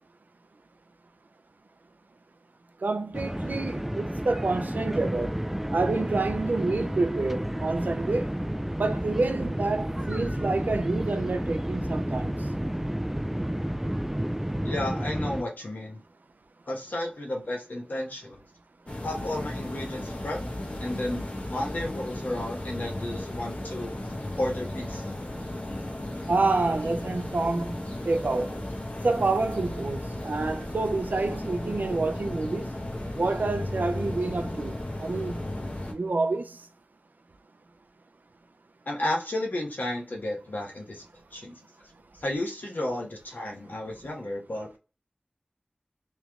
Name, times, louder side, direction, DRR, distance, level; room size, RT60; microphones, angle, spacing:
voice 1, 2.8-5.4 5.7-8.4 8.8-12.3 26.3-28.6 29.0-32.7 33.2-35.4 35.9-36.6, right 3 dB, 80° right, 0.5 m, -28 dB
sound 1, 3.1-15.4, equal, 10° right, 0.4 m, -31 dB
voice 2, 14.6-16.0 16.7-18.4 19.0-20.4 20.8-23.9 24.4-25.2 38.9-41.0 41.3-41.6 42.1-44.7, left 1 dB, 80° left, 1.1 m, -32 dB
sound 2, 18.9-35.9, left 1 dB, 50° left, 1.1 m, -35 dB
3.3 x 3.0 x 3.5 m
wide cardioid pair, 50°, 3 cm